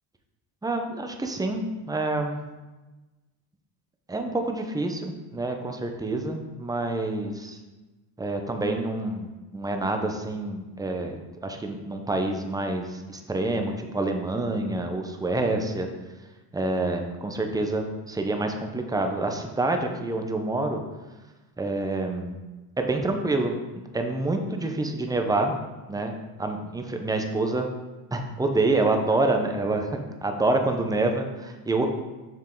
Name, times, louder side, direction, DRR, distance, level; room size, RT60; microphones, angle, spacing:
voice 1, 0.6-2.4 4.1-7.6 8.2-15.9 16.5-20.8 21.6-22.4 22.8-23.6 23.9-25.5 25.9-27.7 28.1-31.8, right 2 dB, 10° right, 4 dB, 0.8 m, -27 dB
7.6 x 5.5 x 3.8 m, 1.2 s
cardioid pair, 105°, 44 cm